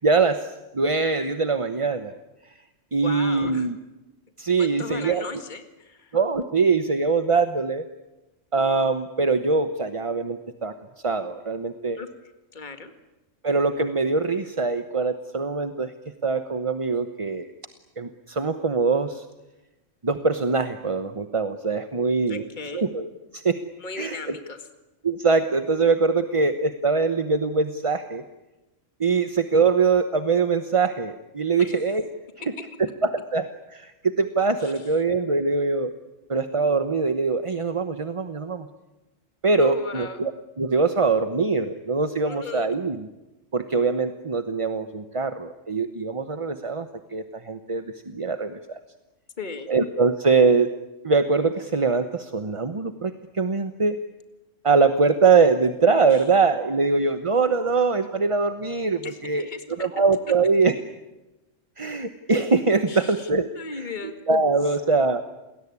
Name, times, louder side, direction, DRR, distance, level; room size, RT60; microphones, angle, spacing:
voice 1, 0.0-2.1 2.4-2.6 2.9-3.8 4.4-5.2 6.1-7.9 8.5-10.7 11.0-12.0 13.4-15.9 16.2-17.5 18.0-19.3 20.0-22.4 22.7-23.6 24.0-24.3 25.0-28.2 29.0-32.0 32.5-32.6 32.8-35.9 36.3-38.7 39.4-40.3 40.6-43.1 43.5-48.8 49.7-50.7 51.0-54.0 54.6-59.5 59.8-60.7 61.8-63.9 64.3-65.2, right 4 dB, 25° right, 9 dB, 0.9 m, -23 dB
voice 2, 3.0-3.7 4.6-6.2 12.0-12.1 12.5-12.9 22.3-22.9 23.8-24.7 31.6-31.8 34.6-34.7 39.6-40.2 42.2-42.7 49.4-49.7 56.1-56.2 59.0-59.9 62.9-63.3 63.6-64.2, left 4 dB, 35° left, 7 dB, 2.1 m, -36 dB
29.0 x 20.5 x 9.7 m, 1.0 s
omnidirectional pair, 1.3 m